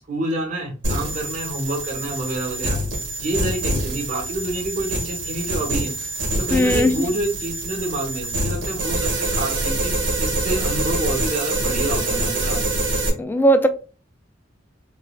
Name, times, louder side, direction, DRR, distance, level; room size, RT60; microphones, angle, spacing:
voice 1, 0.1-2.8 3.2-5.9 6.4-9.9 10.2-12.6, right 1 dB, 40° right, 1.0 m, -28 dB
sound 1, 0.8-13.1, right 2 dB, 85° right, 1.6 m, -25 dB
voice 2, 6.5-7.0 13.2-13.7, equal, 10° left, 0.3 m, -17 dB
3.9 x 3.1 x 2.3 m
head